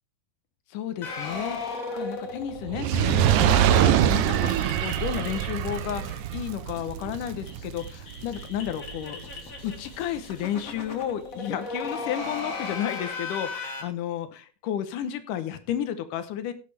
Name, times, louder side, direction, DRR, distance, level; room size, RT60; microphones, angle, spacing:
voice 1, 0.7-9.2 9.6-16.5, left 10 dB, 90° left, 10 dB, 2.6 m, -32 dB
sound 1, 1.0-6.1 6.4-6.5 6.8-6.9 7.1-13.8, left 3 dB, 35° left, 1.5 m, -37 dB
Fire, 2.6-9.1 9.8-9.9, right 11 dB, 85° right, 2.2 m, -24 dB
16.0 x 7.5 x 3.4 m, 0.34 s
omnidirectional pair, 3.6 m